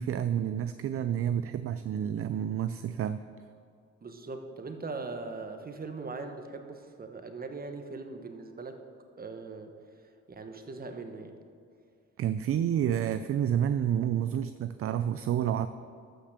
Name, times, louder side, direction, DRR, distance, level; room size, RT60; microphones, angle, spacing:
voice 1, 0.0-3.2 12.2-15.7, right 9 dB, 50° right, 12 dB, 0.4 m, -29 dB
voice 2, 4.0-8.8 9.2-9.8 10.3-11.4, right 3 dB, 30° right, 6 dB, 1.2 m, -40 dB
13.5 x 5.8 x 6.6 m, 2.4 s
cardioid pair, 90°, 30 cm